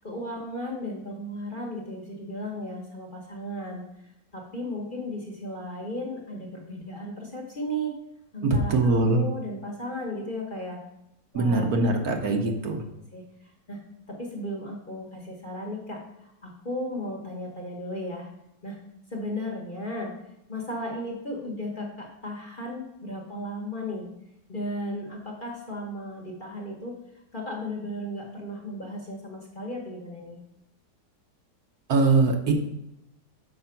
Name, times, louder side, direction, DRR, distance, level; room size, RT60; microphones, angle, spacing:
voice 1, 0.0-3.8 4.3-7.9 8.3-10.8 11.3-11.7 12.2-12.5 13.1-13.2 13.7-13.8 14.1-18.3 18.6-18.8 19.1-20.1 20.5-24.1 24.5-26.9 27.3-30.4, equal, 35° left, -1 dB, 1.1 m, -35 dB
voice 2, 8.4-9.3 11.3-12.8 31.9-32.5, right 3 dB, 65° right, 3 dB, 1.3 m, -22 dB
6.7 x 4.8 x 5.7 m, 0.87 s
omnidirectional pair, 1.8 m